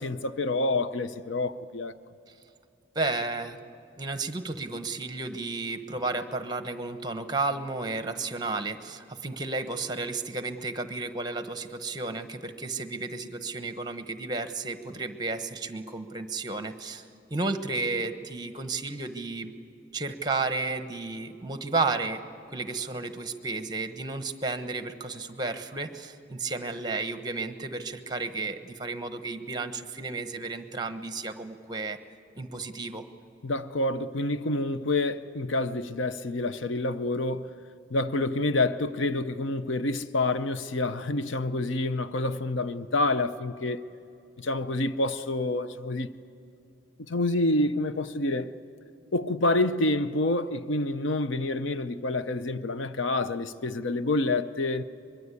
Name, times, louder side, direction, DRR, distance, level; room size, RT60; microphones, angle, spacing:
voice 1, 0.0-1.9 33.4-37.5 37.9-43.8 44.4-46.1 47.1-48.5 49.1-54.8, left 2 dB, 75° left, 0.7 m, -28 dB
voice 2, 2.9-3.6 4.0-19.5 19.9-22.2 22.5-32.0 32.4-33.0, right 3 dB, 20° right, 1.1 m, -32 dB
24.0 x 22.0 x 8.3 m
head